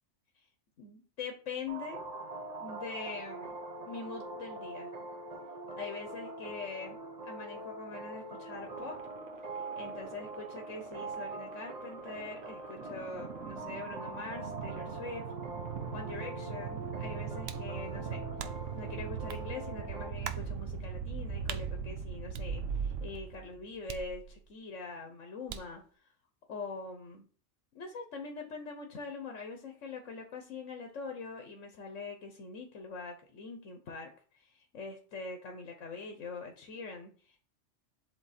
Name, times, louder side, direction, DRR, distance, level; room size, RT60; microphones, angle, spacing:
voice 1, 0.8-2.0 2.6-3.6 3.8-4.9 5.8-8.9 9.7-15.3 15.9-18.2 18.7-25.8 26.5-27.2 27.7-37.4, left 4 dB, 80° left, 3 dB, 1.3 m, -43 dB
sound 1, 1.7-20.1, right 2 dB, 35° right, 0.9 m, -43 dB
sound 2, 8.5-23.6, right 7 dB, 85° right, 1.1 m, -41 dB
sound 3, 17.5-17.7 18.4-18.8 19.3-19.4 20.2-20.5 21.5-21.7 22.3-23.0 23.9-24.6 25.5-25.8, right 8 dB, 65° right, 0.8 m, -43 dB
7.7 x 3.1 x 4.2 m, 0.41 s
omnidirectional pair, 1.3 m